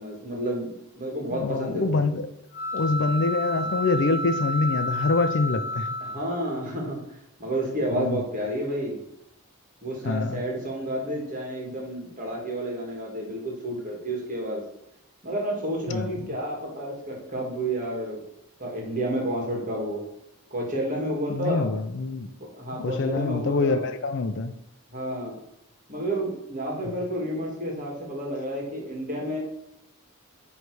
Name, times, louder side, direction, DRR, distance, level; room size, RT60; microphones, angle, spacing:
voice 1, 0.0-2.0 6.0-7.0 7.4-9.0 9.8-14.6 15.2-18.2 18.6-20.0 20.5-21.7 22.4-23.9 24.9-25.3 25.9-29.4, right 1 dB, 35° right, 1.8 m, -30 dB
voice 2, 1.3-2.3 2.7-5.9 7.9-8.2 10.1-10.4 15.9-16.2 21.3-22.3 22.8-24.5, left 3 dB, 55° left, 0.5 m, -25 dB
sound 1, 2.5-6.6, left 1 dB, 35° left, 1.2 m, -31 dB
9.1 x 3.3 x 4.7 m
head